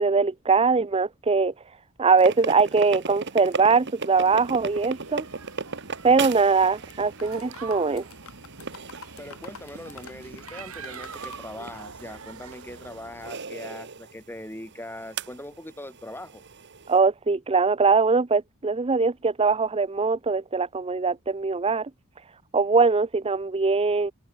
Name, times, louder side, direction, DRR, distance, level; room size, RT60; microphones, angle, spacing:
voice 1, 0.0-1.5 2.0-5.2 6.0-8.0 16.9-21.9 22.5-24.1, right 4 dB, 25° right, 0.5 m, -22 dB
sound 1, 2.2-17.0, right 4 dB, 55° right, 1.6 m, -38 dB
sound 2, 4.1-13.3, right 4 dB, 70° right, 2.7 m, -44 dB
sound 3, 6.5-6.9 7.2-11.4, left 5 dB, 70° left, 6.9 m, -47 dB
voice 2, 9.2-16.4, left 1 dB, 10° left, 7.5 m, -41 dB
head